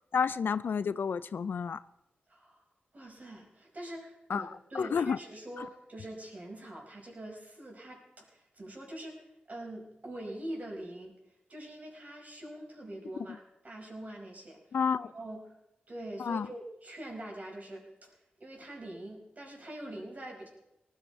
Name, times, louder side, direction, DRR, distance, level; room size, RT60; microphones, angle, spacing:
voice 1, 0.1-1.8 4.3-5.2 14.7-15.1 16.2-16.5, left 6 dB, 70° left, 0.4 m, -30 dB
voice 2, 2.3-2.6 2.9-11.1 11.5-14.8 15.1-15.4 15.9-18.1 18.4-20.5, right 1 dB, 45° right, 5.3 m, -44 dB
18.5 x 13.0 x 4.6 m
cardioid pair, 65°, 4 cm